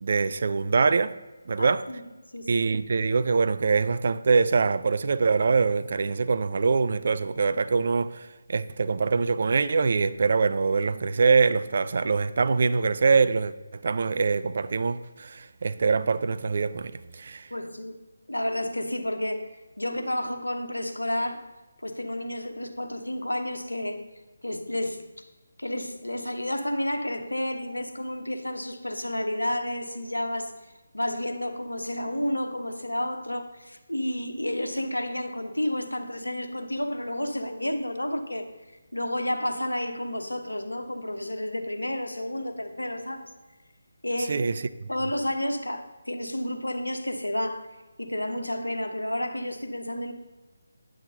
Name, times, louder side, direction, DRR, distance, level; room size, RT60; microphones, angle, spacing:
voice 1, 0.0-1.1 1.5-1.8 2.5-17.5 44.3-44.5, right 4 dB, 50° right, 0.4 m, -24 dB
voice 2, 1.6-2.0 2.3-2.7 17.5-18.0 18.3-21.4 21.8-24.0 24.4-25.3 25.6-38.5 38.9-43.3 44.0-44.5 44.9-47.7 48.0-50.1, left 1 dB, 85° left, 0.9 m, -31 dB
9.3 x 6.2 x 3.9 m
figure-of-eight pair, 150°, 0 cm